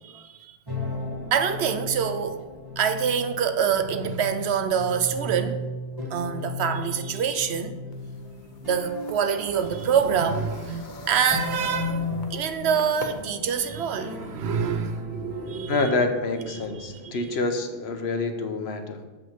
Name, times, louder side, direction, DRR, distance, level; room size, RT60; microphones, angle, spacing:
voice 1, 0.0-0.6 1.3-2.5 2.8-5.6 6.1-7.8 8.6-16.0 16.5-17.2, right 7 dB, 85° right, 1.0 m, -26 dB
sound 1, 0.7-18.1, left 2 dB, 20° right, 1.5 m, -36 dB
sound 2, 7.9-13.2, left 4 dB, 50° left, 0.9 m, -44 dB
voice 2, 15.7-19.0, left 3 dB, 80° left, 1.2 m, -27 dB
7.5 x 5.3 x 5.8 m
omnidirectional pair, 1.1 m